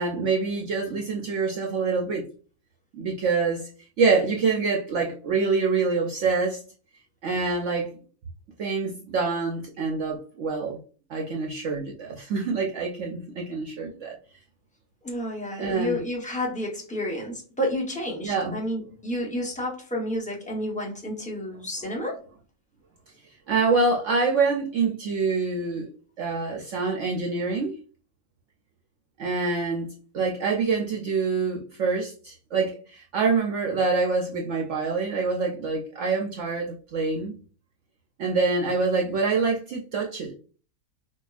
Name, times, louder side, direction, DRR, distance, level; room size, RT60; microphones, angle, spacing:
voice 1, 0.0-2.2 3.0-3.6 4.0-6.6 7.2-7.9 8.6-10.8 11.1-14.1 15.6-16.0 18.2-18.6 23.5-25.9 26.2-27.7 29.2-29.9 30.1-37.3 38.2-40.3, right 4 dB, 65° right, 0 dB, 0.8 m, -26 dB
voice 2, 15.0-22.2, equal, 5° left, -2 dB, 0.6 m, -30 dB
4.6 x 2.3 x 2.3 m, 0.38 s
omnidirectional pair, 1.7 m